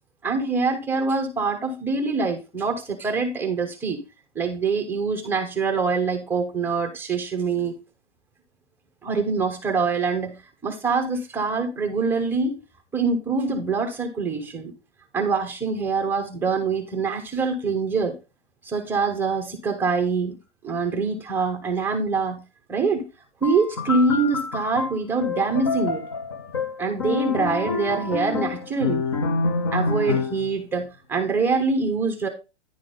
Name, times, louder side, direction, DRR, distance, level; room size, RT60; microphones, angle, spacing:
voice 1, 0.2-4.0 4.3-7.8 9.0-10.3 10.6-12.6 12.9-14.7 15.1-18.2 18.6-20.4 20.6-22.4 22.7-23.1 23.4-26.0 26.8-29.0 29.7-32.3, right 4 dB, 5° right, 0.7 m, -24 dB
sound 1, 23.4-30.5, left 4 dB, 25° left, 0.3 m, -27 dB
10.0 x 3.7 x 5.2 m
hypercardioid pair, 150°, 35 cm